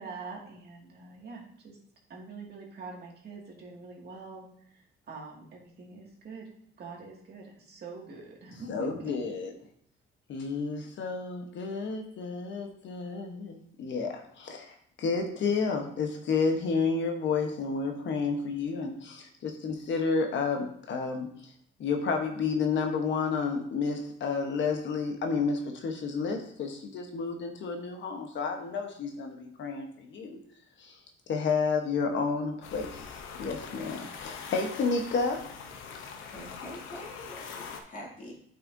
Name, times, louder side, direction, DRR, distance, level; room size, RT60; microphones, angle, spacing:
voice 1, 0.0-1.8 2.1-6.5 6.8-9.1, right 4 dB, 55° right, -2 dB, 2.1 m, -44 dB
voice 2, 8.7-9.5 10.3-21.5 21.8-30.4 30.8-31.0 31.3-33.0 33.4-35.4, left 4 dB, 65° left, 4 dB, 1.1 m, -31 dB
sound 1, 32.6-37.8, left 6 dB, 90° left, 0.8 m, -43 dB
voice 3, 36.2-38.3, equal, 45° left, -3 dB, 2.4 m, -45 dB
8.8 x 5.7 x 2.7 m, 0.67 s
cardioid pair, 90°, 20 cm